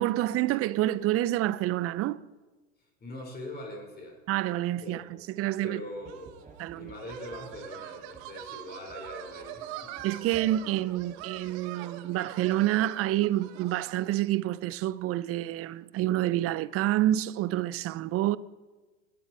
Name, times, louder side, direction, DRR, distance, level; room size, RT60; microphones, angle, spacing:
voice 1, 0.0-2.2 4.3-5.0 5.4-5.8 6.6-6.9 10.0-18.4, right 14 dB, 40° right, 0.7 m, -28 dB
voice 2, 2.8-4.2 4.8-5.0 5.6-6.4 6.7-10.0, left 1 dB, 30° left, 5.4 m, -42 dB
sound 1, 5.9-11.5, right 5 dB, 20° right, 2.5 m, -55 dB
sound 2, 6.1-14.2, right 11 dB, 60° right, 1.4 m, -43 dB
18.5 x 11.5 x 4.8 m
hypercardioid pair, 100°, 35 cm